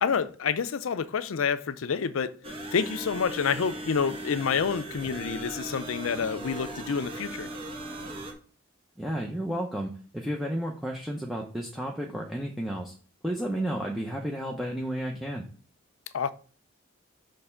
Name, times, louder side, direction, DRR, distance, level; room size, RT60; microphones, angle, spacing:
voice 1, 0.0-2.3 2.7-7.5 16.1-16.3, left 6 dB, 80° left, 0.5 m, -28 dB
sound 1, 2.4-8.3, right 1 dB, 25° right, 1.1 m, -38 dB
voice 2, 9.0-12.9 13.2-15.4, equal, ahead, 0.6 m, -32 dB
6.5 x 3.2 x 5.7 m
head